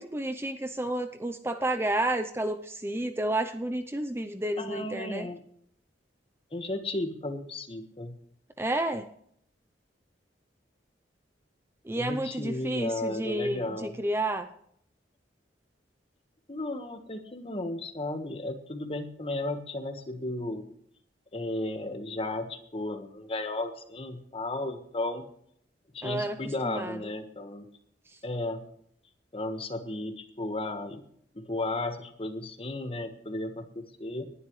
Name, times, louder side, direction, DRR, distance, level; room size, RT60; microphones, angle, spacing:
voice 1, 0.0-5.3 8.6-9.0 11.8-14.5 26.0-27.0, right 1 dB, 15° right, 8 dB, 0.6 m, -31 dB
voice 2, 4.6-5.4 6.5-8.2 11.9-14.0 16.5-20.7 21.3-25.3 25.9-27.7 28.2-28.6 29.3-31.0 31.3-34.3, left 2 dB, 30° left, 7 dB, 1.5 m, -34 dB
19.5 x 11.5 x 3.2 m, 0.66 s
head